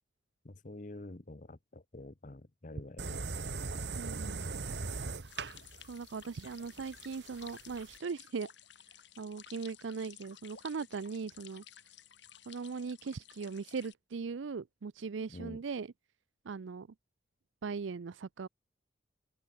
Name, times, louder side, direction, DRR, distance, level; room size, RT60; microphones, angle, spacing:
voice 1, 0.4-3.3 15.3-15.6, left 2 dB, 45° left, 1.0 m, -47 dB
sound 1, 3.0-8.0, right 3 dB, 65° right, 1.3 m, -40 dB
voice 2, 4.0-4.4 5.9-8.5 9.2-11.6 12.5-15.9 16.4-16.9 17.6-18.5, right 5 dB, 90° right, 0.5 m, -39 dB
sound 2, 5.2-13.9, left 10 dB, 75° left, 3.0 m, -55 dB
open air
head